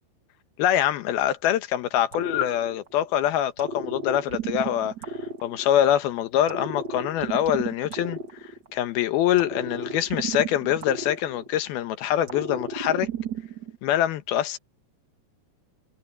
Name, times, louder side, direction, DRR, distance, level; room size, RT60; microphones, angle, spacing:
voice 1, 0.6-4.9 5.4-8.2 8.7-13.1 13.8-14.6, left 11 dB, 70° left, 2.8 m, -24 dB
sound 1, 2.1-3.1 3.6-6.0 6.5-8.9 9.4-11.8 12.3-13.8, right 4 dB, 60° right, 1.1 m, -34 dB
omnidirectional pair, 4.9 m